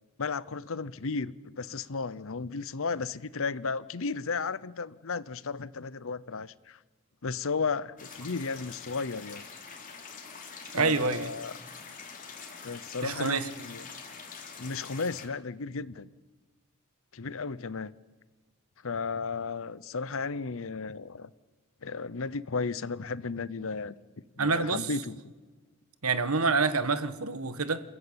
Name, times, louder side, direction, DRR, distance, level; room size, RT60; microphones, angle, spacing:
voice 1, 0.2-6.8 7.2-9.5 10.7-11.5 12.6-13.8 14.6-16.1 17.1-17.9 18.8-21.3 21.8-23.9 24.4-25.2, left 4 dB, 65° left, 0.8 m, -34 dB
sound 1, 8.0-15.3, left 5 dB, 40° left, 3.1 m, -45 dB
voice 2, 10.7-11.3 13.0-13.5 24.4-24.9 26.0-27.8, right 4 dB, 85° right, 1.5 m, -27 dB
28.5 x 15.5 x 8.8 m
head